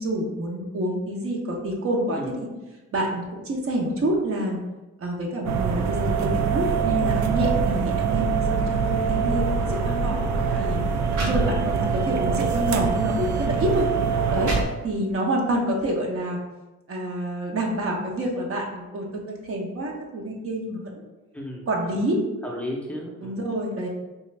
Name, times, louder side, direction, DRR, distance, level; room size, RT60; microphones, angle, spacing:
voice 1, 0.0-2.5 2.9-4.6 5.0-10.2 10.6-10.8 11.1-13.8 14.3-14.5 14.8-16.4 16.9-21.0 21.7-22.2 23.2-23.9, right 1 dB, 45° right, 0 dB, 0.8 m, -27 dB
sound 1, 5.4-14.6, right 6 dB, 65° right, 0.5 m, -24 dB
voice 2, 10.1-10.8 11.3-11.7 13.7-13.8 21.3-21.6 22.4-23.5, left 1 dB, 5° left, -3 dB, 0.6 m, -35 dB
sound 2, 11.1-12.0 12.5-12.7 13.5-13.6 14.1-15.2, equal, 85° right, 1.4 m, -33 dB
3.5 x 2.5 x 3.2 m, 1.1 s
cardioid pair, 90°, 30 cm